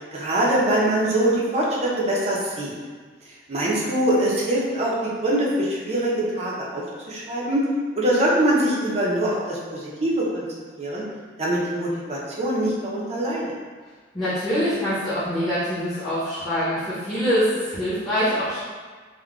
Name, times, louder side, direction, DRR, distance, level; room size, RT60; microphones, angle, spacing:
voice 1, 0.1-2.7 3.5-7.7 7.9-10.5 10.8-11.0 11.4-13.5, right 1 dB, 35° right, -5 dB, 0.6 m, -23 dB
voice 2, 14.1-18.6, equal, 15° left, -14 dB, 0.8 m, -24 dB
3.6 x 2.1 x 2.3 m, 1.5 s
head